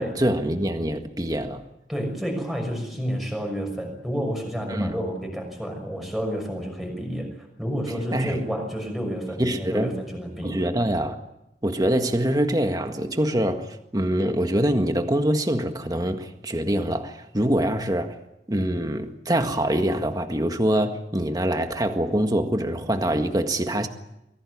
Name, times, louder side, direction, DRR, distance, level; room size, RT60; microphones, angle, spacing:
voice 1, 0.0-1.6 4.7-4.9 8.1-8.4 9.4-9.9 10.4-11.2 11.6-18.2 18.5-23.9, right 1 dB, 20° right, 1.7 m, -24 dB
voice 2, 1.9-10.7, equal, ahead, 6.2 m, -30 dB
24.0 x 17.0 x 9.6 m
head